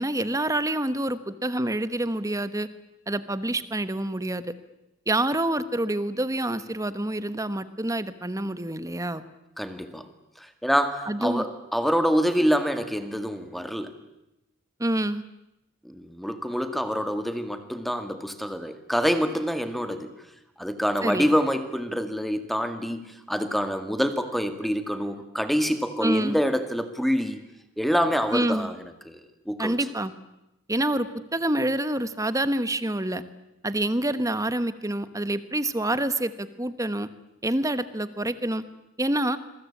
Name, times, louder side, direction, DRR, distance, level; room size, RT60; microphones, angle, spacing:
voice 1, 0.0-2.7 3.1-4.4 5.1-9.2 11.1-11.4 14.8-15.2 21.0-21.3 26.0-26.4 28.3-28.7 29.6-30.1 30.7-33.2 33.6-37.1 37.4-38.6 39.0-39.4, right 1 dB, 15° right, 13 dB, 1.3 m, -27 dB
voice 2, 9.6-10.1 10.4-13.9 15.8-20.1 20.6-27.4 27.8-28.8 29.1-29.2 29.5-29.8, equal, ahead, 8 dB, 2.0 m, -26 dB
27.0 x 22.5 x 8.7 m, 0.89 s
head